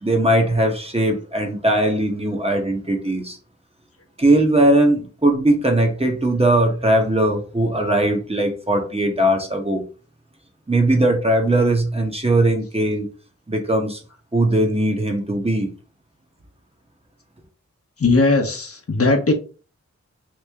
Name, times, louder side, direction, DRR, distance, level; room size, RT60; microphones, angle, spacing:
voice 1, 0.0-3.4 4.2-9.8 10.7-13.1 13.5-14.0 14.3-15.7, right 1 dB, 20° right, 2 dB, 0.8 m, -19 dB
voice 2, 18.0-19.3, left 3 dB, 55° left, 4 dB, 0.8 m, -18 dB
3.0 x 2.6 x 3.4 m, 0.35 s
wide cardioid pair, 75°, 29 cm